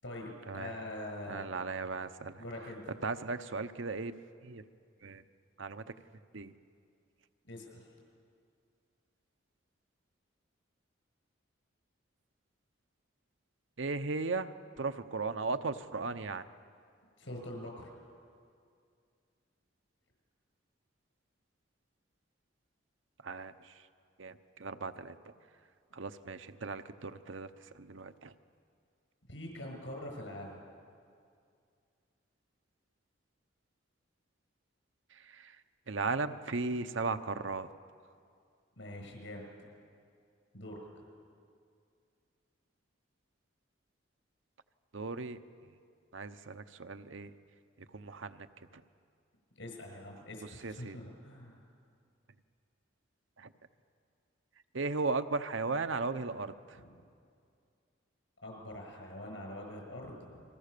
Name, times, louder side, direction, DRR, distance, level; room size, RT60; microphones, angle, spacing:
voice 1, 0.0-1.5 2.4-2.8 7.5-7.9 17.2-17.9 29.3-30.6 38.8-39.7 40.5-40.9 49.6-51.6 56.8-57.0 58.4-60.4, left 1 dB, 75° left, 2 dB, 6.9 m, -44 dB
voice 2, 1.3-2.4 3.0-4.1 4.4-4.6 5.0-5.2 5.6-5.9 6.3-6.5 13.8-14.5 14.8-16.4 23.2-23.5 24.2-25.2 25.9-27.5 27.8-28.3 35.3-35.5 35.9-37.7 44.9-45.4 46.1-47.3 47.9-48.5 48.7-48.8 50.6-51.0 53.4-53.5 54.7-56.8, right 3 dB, 75° right, 9 dB, 0.9 m, -36 dB
29.0 x 23.0 x 6.8 m, 2.3 s
head